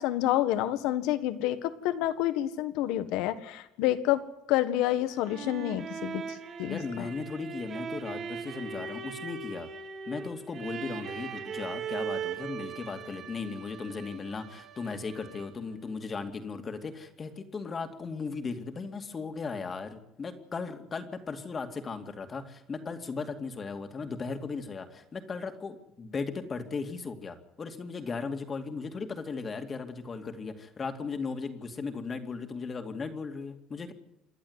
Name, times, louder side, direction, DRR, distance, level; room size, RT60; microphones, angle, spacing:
voice 1, 0.0-4.2 4.5-6.2 6.6-6.8, left 13 dB, 80° left, 12 dB, 1.6 m, -28 dB
sound 1, 4.9-15.7, right 6 dB, 45° right, 3.0 m, -39 dB
voice 2, 6.6-9.7 10.1-33.9, left 4 dB, 30° left, 7 dB, 2.4 m, -37 dB
28.0 x 11.0 x 9.7 m, 0.87 s
cardioid pair, 120°, 0 cm